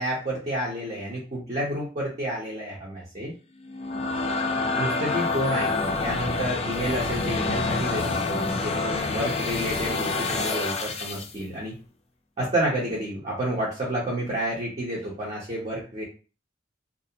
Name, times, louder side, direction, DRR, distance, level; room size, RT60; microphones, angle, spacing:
voice 1, 0.0-3.3 4.8-11.8 12.4-16.0, right 1 dB, 35° right, -5 dB, 0.7 m, -30 dB
sound 1, 3.6-11.3, left 3 dB, 30° left, 0.4 m, -27 dB
2.4 x 2.1 x 2.7 m, 0.35 s
head